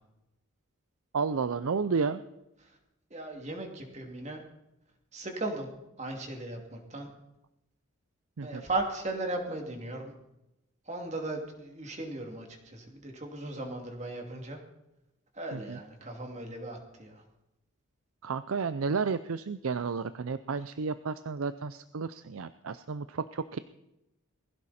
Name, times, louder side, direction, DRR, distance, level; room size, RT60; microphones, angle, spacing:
voice 1, 1.1-2.2 8.4-8.6 15.5-15.8 18.2-23.6, right 5 dB, 80° right, 13 dB, 0.5 m, -32 dB
voice 2, 3.1-4.4 5.1-5.7 6.0-7.1 8.4-10.1 10.9-14.6 15.3-17.2, right 2 dB, 30° right, 2 dB, 2.7 m, -37 dB
20.0 x 16.0 x 4.3 m, 0.91 s
head